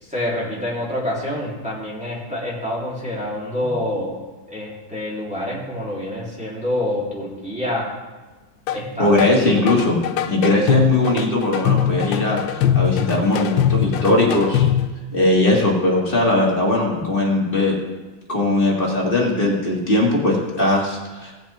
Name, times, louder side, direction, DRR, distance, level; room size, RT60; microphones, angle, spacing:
voice 1, 0.0-4.2 4.5-7.9 8.7-9.4, left 1 dB, 5° right, -6 dB, 2.9 m, -27 dB
sound 1, 8.7-8.8 9.2-14.9, left 10 dB, 80° left, 1.3 m, -21 dB
voice 2, 9.0-10.0 10.3-14.7 15.1-17.7 18.3-21.3, left 1 dB, 30° left, -3 dB, 2.1 m, -19 dB
18.0 x 7.4 x 3.4 m, 1.2 s
omnidirectional pair, 2.1 m